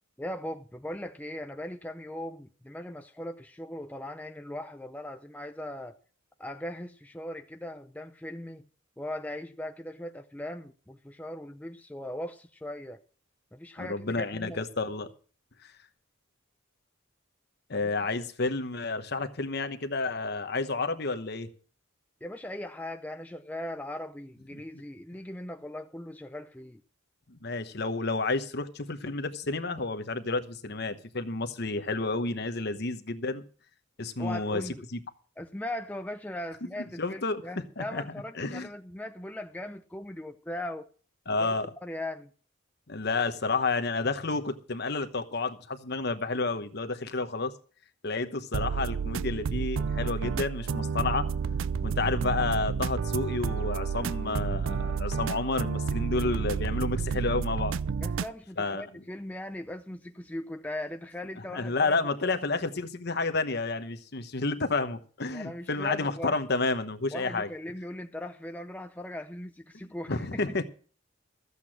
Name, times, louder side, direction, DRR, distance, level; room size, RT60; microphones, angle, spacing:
voice 1, 0.2-6.0 6.4-8.7 9.0-13.0 13.5-14.6 17.7-17.9 22.2-26.8 34.2-34.9 35.4-40.9 41.3-41.5 41.8-42.3 58.0-62.0 65.3-66.4 67.1-70.6, left 1 dB, 5° left, 0.5 m, -39 dB
voice 2, 13.8-15.1 17.7-21.5 27.3-33.4 34.0-34.6 34.9-35.0 37.0-37.4 37.8-38.0 38.4-38.7 41.3-41.7 42.9-47.5 48.0-51.3 51.8-57.7 58.6-58.8 61.5-67.5 70.1-70.6, left 3 dB, 50° left, 1.1 m, -30 dB
sound 1, 48.5-58.3, right 5 dB, 75° right, 0.5 m, -30 dB
14.0 x 8.3 x 6.1 m
head